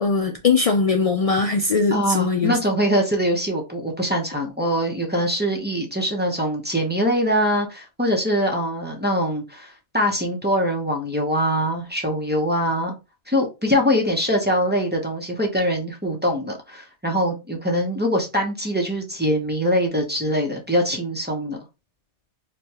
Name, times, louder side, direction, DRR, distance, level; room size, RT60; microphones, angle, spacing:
voice 1, 0.0-2.6, left 4 dB, 70° left, 0.3 m, -20 dB
voice 2, 1.9-12.9 13.3-21.6, equal, 10° right, 0.7 m, -23 dB
5.0 x 2.3 x 2.9 m
omnidirectional pair, 1.2 m